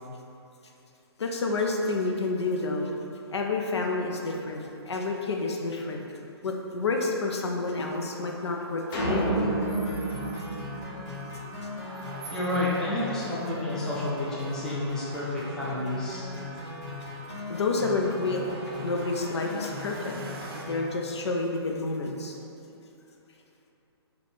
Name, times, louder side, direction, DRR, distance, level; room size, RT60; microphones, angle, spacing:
voice 1, 1.2-2.9 3.3-6.0 6.4-9.4 17.0-17.1 17.5-20.1 20.6-22.4, left 3 dB, 85° left, 1 dB, 0.5 m, -29 dB
sound 1, 7.8-20.6, right 2 dB, 60° right, 0.5 m, -46 dB
sound 2, 8.9-11.5, right 2 dB, 50° left, 0.9 m, -29 dB
sound 3, 9.4-20.9, left 2 dB, 25° left, 1.0 m, -39 dB
voice 2, 12.3-16.3, left 2 dB, 5° left, -7 dB, 0.4 m, -30 dB
3.5 x 2.3 x 3.8 m, 2.9 s
hypercardioid pair, 145°, 14 cm